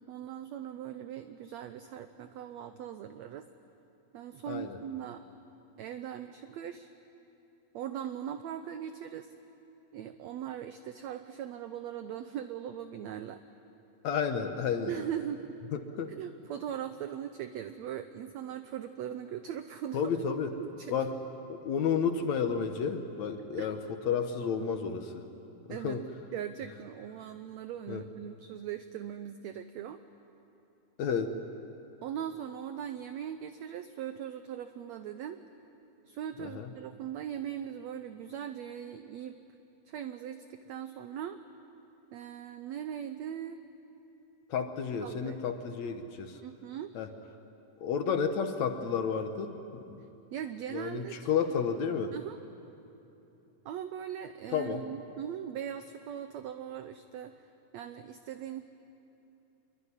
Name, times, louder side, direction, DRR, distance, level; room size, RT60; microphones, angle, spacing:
voice 1, 0.1-3.5 4.1-5.2 5.8-6.9 7.7-9.3 9.9-13.4 14.9-15.6 16.2-20.1 20.5-21.0 23.6-23.7 25.7-26.0 26.3-30.0 32.0-35.4 36.1-39.4 39.8-41.4 42.1-43.6 45.0-45.4 46.4-46.9 50.3-51.3 52.1-52.4 53.6-57.5 57.7-58.6, right 9 dB, 85° right, 9 dB, 1.5 m, -40 dB
voice 2, 4.5-4.8 14.0-14.9 15.7-16.1 19.9-20.5 20.9-21.2 21.5-23.8 24.1-25.2 25.7-26.0 27.9-28.0 31.0-31.4 36.4-36.7 44.5-46.4 47.0-47.1 47.8-49.6 49.9-50.0 50.7-52.1 54.5-54.8, left 6 dB, 65° left, 7 dB, 2.0 m, -31 dB
25.5 x 22.5 x 9.8 m, 2.9 s
omnidirectional pair, 4.0 m